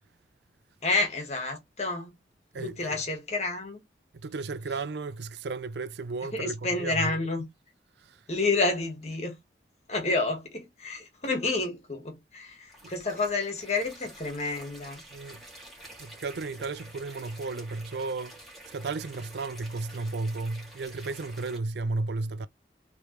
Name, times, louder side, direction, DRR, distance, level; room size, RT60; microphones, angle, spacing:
voice 1, 0.8-2.1 2.6-3.8 6.3-7.5 8.3-9.4 9.9-15.0, left 3 dB, 40° left, 1.7 m, -29 dB
voice 2, 2.5-3.0 4.2-7.2 15.1-15.4 16.0-18.4 18.7-22.5, right 3 dB, 75° right, 0.5 m, -34 dB
sound 1, 12.7-21.6, right 1 dB, ahead, 2.5 m, -49 dB
4.6 x 3.4 x 3.2 m
head